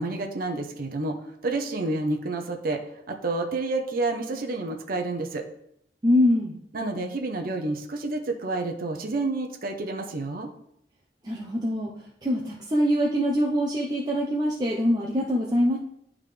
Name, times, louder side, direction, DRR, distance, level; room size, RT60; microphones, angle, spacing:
voice 1, 0.0-2.8 3.1-5.4 6.7-10.5, right 2 dB, 55° right, 2 dB, 0.8 m, -29 dB
voice 2, 6.0-6.6 11.2-11.9 12.2-15.8, equal, 25° right, -3 dB, 0.7 m, -24 dB
11.0 x 3.7 x 3.3 m, 0.73 s
head